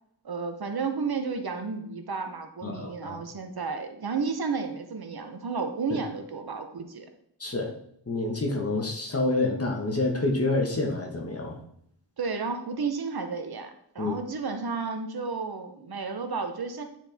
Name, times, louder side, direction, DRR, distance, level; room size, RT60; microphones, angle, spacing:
voice 1, 0.2-7.1 12.2-16.8, right 4 dB, 55° right, 6 dB, 0.8 m, -32 dB
voice 2, 2.6-3.2 7.4-7.7 8.1-11.6 14.0-14.1, left 2 dB, 30° left, 1 dB, 1.3 m, -28 dB
9.1 x 4.3 x 3.5 m, 0.69 s
wide cardioid pair, 110°, 44 cm